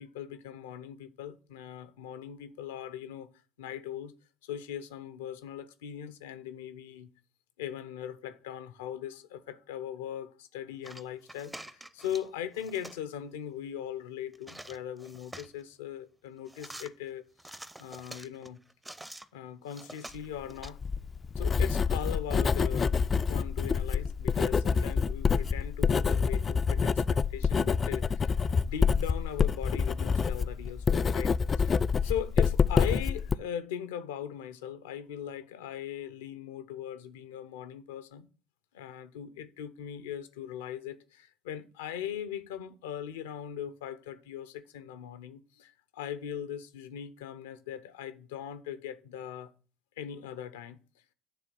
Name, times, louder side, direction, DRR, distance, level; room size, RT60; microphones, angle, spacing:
voice 1, 0.0-3.3 3.6-4.1 4.4-7.1 7.6-17.5 17.8-18.6 19.3-20.8 21.4-38.3 38.7-49.5 50.0-50.8, left 10 dB, 85° left, 0.6 m, -40 dB
sound 1, 10.8-12.3 12.5-13.0 14.3-15.6 16.5-16.9 17.4-19.3 19.7-20.7, right 1 dB, 10° right, 0.6 m, -47 dB
Writing, 20.6-33.3, left 5 dB, 35° left, 0.3 m, -27 dB
9.2 x 3.5 x 6.8 m
hypercardioid pair, 60°, 0 cm